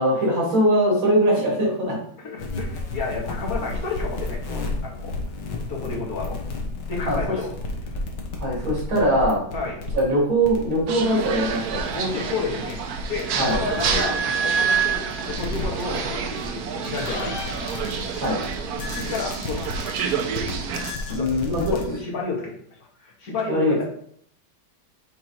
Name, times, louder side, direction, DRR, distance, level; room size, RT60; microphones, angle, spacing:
voice 1, 0.0-2.0 7.1-7.2 8.4-9.4 9.9-11.8 13.4-13.6 18.2-18.4 21.1-21.8 23.5-23.8, equal, 80° right, -4 dB, 3.7 m, -21 dB
voice 2, 2.2-5.2 5.7-6.4 6.9-7.5 9.5-9.8 11.9-12.8 13.1-17.6 18.8-19.8 21.1-21.4 21.7-22.6 23.0-23.8, left 3 dB, 45° left, -3 dB, 2.2 m, -31 dB
sound 1, 2.4-21.9, right 1 dB, 65° left, 1.8 m, -30 dB
sound 2, 10.9-20.9, right 6 dB, 65° right, 1.0 m, -29 dB
sound 3, 17.1-18.4, left 3 dB, 85° left, 1.9 m, -35 dB
8.5 x 3.8 x 4.4 m, 0.66 s
omnidirectional pair, 2.1 m